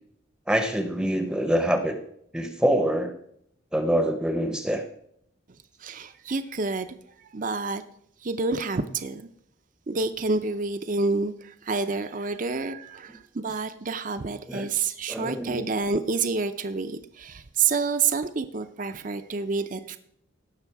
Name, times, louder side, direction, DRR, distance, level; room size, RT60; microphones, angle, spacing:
voice 1, 0.5-2.0 2.3-3.2 3.7-4.8 14.5-14.7 15.1-15.6, right 1 dB, 5° right, 0.7 m, -25 dB
voice 2, 5.8-6.9 7.2-7.8 8.2-9.3 9.9-20.0, right 4 dB, 40° right, 0.5 m, -28 dB
16.5 x 6.3 x 4.6 m
head